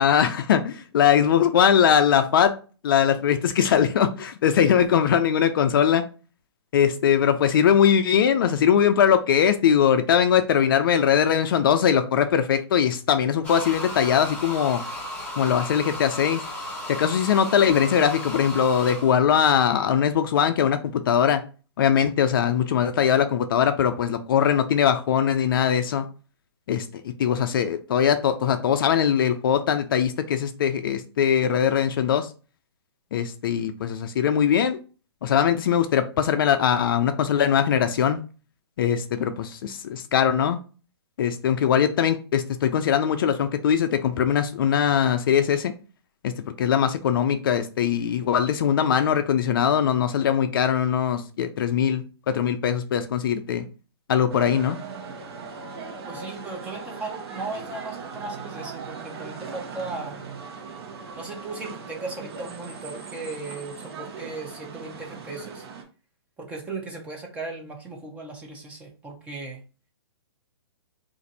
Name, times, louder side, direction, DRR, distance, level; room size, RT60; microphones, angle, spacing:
voice 1, 0.0-2.5 2.8-6.0 6.7-14.8 15.4-16.4 16.9-21.4 21.8-26.1 26.7-32.3 33.1-34.8 35.2-38.2 38.8-40.6 41.2-45.7 46.2-53.7 54.1-54.8, left 8 dB, 50° left, 9 dB, 0.4 m, -21 dB
sound 1, 13.4-19.1, left 1 dB, 10° left, 1.2 m, -35 dB
sound 2, 54.3-65.8, right 5 dB, 65° right, 1.0 m, -39 dB
voice 2, 56.1-60.2 61.1-65.6 66.4-69.6, right 3 dB, 10° right, 1 dB, 0.6 m, -37 dB
2.5 x 2.5 x 4.1 m, 0.35 s
hypercardioid pair, 150°, 14 cm